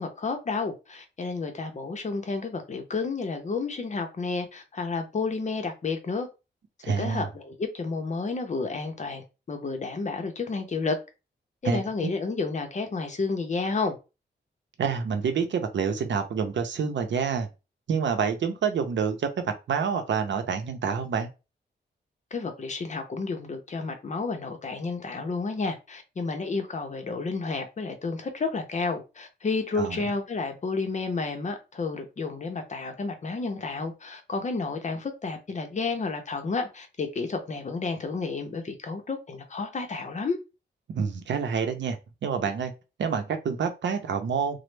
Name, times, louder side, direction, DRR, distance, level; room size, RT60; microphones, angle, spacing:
voice 1, 0.0-6.3 6.9-11.0 11.6-14.0 22.3-40.4, left 4 dB, 40° left, 0.6 m, -31 dB
voice 2, 6.8-7.2 11.6-12.1 14.8-17.5 17.9-21.3 29.8-30.0 40.9-42.0 42.2-42.7 43.0-44.6, right 6 dB, 80° right, 0.6 m, -27 dB
3.0 x 2.0 x 3.2 m
wide cardioid pair, 160°, 19 cm